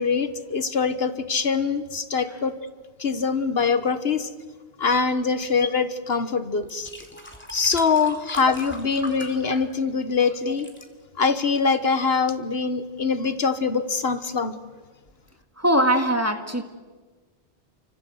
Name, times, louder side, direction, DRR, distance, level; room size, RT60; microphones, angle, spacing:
voice 1, 0.0-2.5 3.0-4.3 4.8-6.9 7.5-10.7 11.2-14.5, left 5 dB, 65° left, 11 dB, 1.5 m, -23 dB
sound 1, 6.0-6.1 6.6-10.1 10.4-10.9 11.6-11.7, equal, 10° left, 2.9 m, -40 dB
voice 2, 15.6-16.6, equal, 15° right, 5 dB, 2.0 m, -22 dB
30.0 x 24.5 x 7.9 m, 1.4 s
omnidirectional pair, 1.1 m